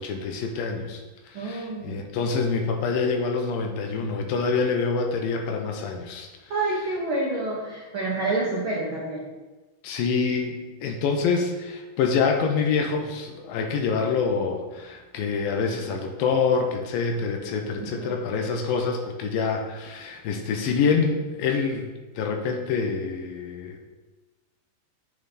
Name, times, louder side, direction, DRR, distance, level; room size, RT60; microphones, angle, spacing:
voice 1, 0.0-6.3 9.8-21.9 22.2-23.8, left 5 dB, 75° left, 3 dB, 2.5 m, -26 dB
voice 2, 1.3-1.9 6.5-9.3 17.8-18.2, right 2 dB, 80° right, -4 dB, 1.1 m, -28 dB
8.3 x 7.4 x 4.2 m, 1.2 s
omnidirectional pair, 4.4 m